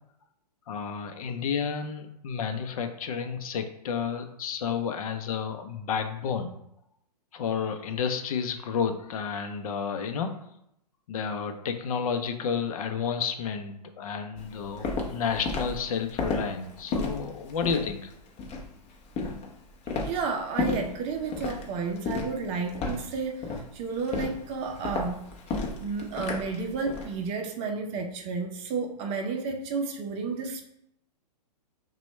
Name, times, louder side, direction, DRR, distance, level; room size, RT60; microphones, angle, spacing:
voice 1, 0.7-6.5 7.3-10.4 11.1-18.1, left 6 dB, 55° left, 7 dB, 0.6 m, -31 dB
Walk footsteps, 14.4-27.1, left 3 dB, 30° left, 0.8 m, -33 dB
voice 2, 20.0-25.2 25.8-30.6, right 4 dB, 30° right, 3 dB, 0.6 m, -32 dB
5.9 x 2.3 x 3.2 m, 0.77 s
hypercardioid pair, 125°, 21 cm